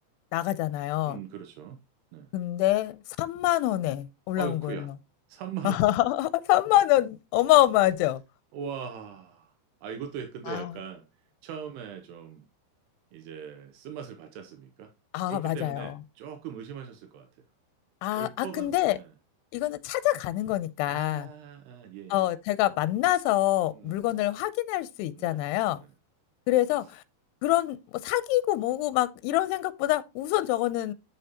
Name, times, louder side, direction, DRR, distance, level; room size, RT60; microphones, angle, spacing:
voice 1, 0.3-1.2 2.3-4.8 5.6-8.2 10.5-10.7 15.1-15.9 18.0-19.0 19.5-21.3 22.1-25.8 26.5-27.0 27.4-30.9, left 15 dB, 85° left, 2.7 m, -26 dB
voice 2, 1.0-1.8 2.1-2.3 4.4-4.9 5.3-5.8 8.5-9.5 9.8-11.1 11.4-12.5 13.1-14.9 15.3-17.5 18.1-19.1 20.9-22.3 23.7-24.1 25.1-25.4 25.8-25.9, right 7 dB, 85° right, 3.1 m, -40 dB
9.2 x 6.7 x 2.8 m
omnidirectional pair, 4.7 m